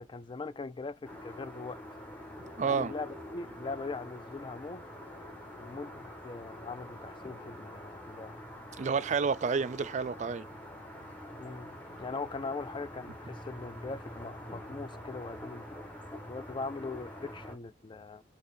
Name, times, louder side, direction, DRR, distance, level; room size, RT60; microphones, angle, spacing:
voice 1, 0.0-1.8 2.6-4.9 5.6-8.3 11.4-15.6 16.3-18.2, left 3 dB, 30° left, 0.4 m, -41 dB
sound 1, 1.0-17.6, equal, 10° left, 1.2 m, -46 dB
voice 2, 2.6-2.9 8.8-10.5, right 5 dB, 45° right, 0.4 m, -30 dB
4.3 x 2.9 x 2.5 m
head